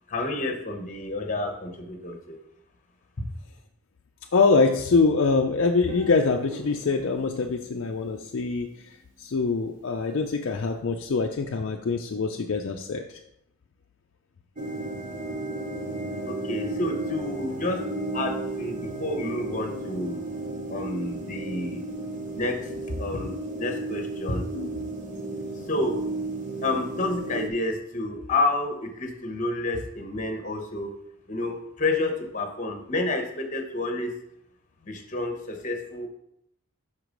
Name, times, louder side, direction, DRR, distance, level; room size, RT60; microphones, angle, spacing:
voice 1, 0.1-2.4 3.2-3.3 16.3-17.8 18.1-20.2 20.7-21.8 22.3-24.4 24.7-24.8 25.6-26.0 26.6-30.9 31.3-34.1 34.8-36.1, left 2 dB, 35° left, 5 dB, 0.9 m, -29 dB
voice 2, 4.3-8.7 9.2-13.0 24.5-24.7, left 4 dB, 55° left, 3 dB, 0.4 m, -24 dB
Guitar, 5.9-8.8, equal, 85° right, 2.1 m, -42 dB
sound 1, 14.6-27.5, right 2 dB, 35° right, 0.6 m, -33 dB
5.8 x 4.7 x 5.1 m, 0.78 s
head